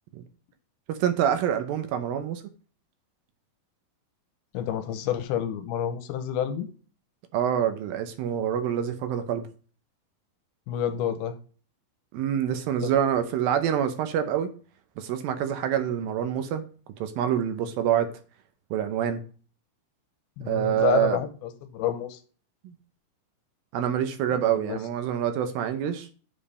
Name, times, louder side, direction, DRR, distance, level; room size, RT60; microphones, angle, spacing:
voice 1, 0.9-2.4 7.3-9.4 12.1-14.5 15.0-16.6 17.0-18.1 18.7-19.2 20.5-21.2 22.6-22.7 23.7-26.1, right 9 dB, 75° right, 2.4 m, -26 dB
voice 2, 4.5-6.7 10.7-11.3 12.8-12.9 20.4-21.3 21.7-22.2 24.7-24.8, left 9 dB, 85° left, 2.7 m, -28 dB
7.3 x 5.3 x 4.2 m
omnidirectional pair, 4.4 m